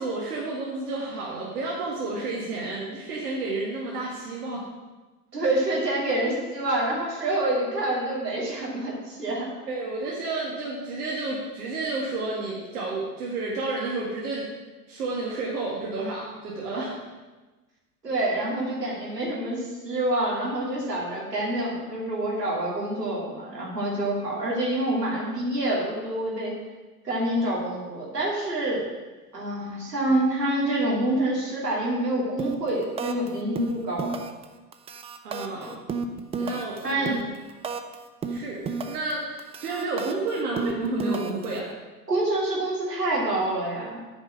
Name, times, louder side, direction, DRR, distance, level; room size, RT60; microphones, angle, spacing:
voice 1, 0.0-4.6 9.7-14.4 14.9-16.9 35.2-35.7 36.4-37.2 38.3-38.6 38.9-41.6, right 2 dB, 70° right, -5 dB, 2.1 m, -31 dB
voice 2, 5.3-9.5 18.0-26.5 27.0-28.8 29.3-34.2 35.6-35.7 36.4-37.2 42.1-44.0, right 1 dB, 85° right, -4 dB, 2.7 m, -27 dB
sound 1, 32.4-32.7 33.0-33.3 33.6-34.4 34.7-37.9 38.2-39.1 39.4-41.6, right 5 dB, 15° right, 0.4 m, -32 dB
8.4 x 5.3 x 7.4 m, 1.2 s
figure-of-eight pair, 80°, 47 cm